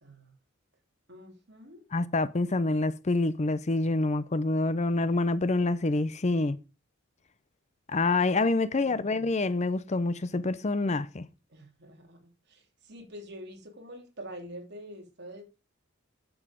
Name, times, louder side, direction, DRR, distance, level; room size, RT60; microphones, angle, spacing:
voice 1, 0.0-0.3 1.1-1.9 8.8-9.3 11.5-15.5, equal, 55° right, 3.0 m, -46 dB
voice 2, 1.9-6.6 7.9-11.3, left 2 dB, 30° left, 0.6 m, -27 dB
9.9 x 7.2 x 5.1 m
head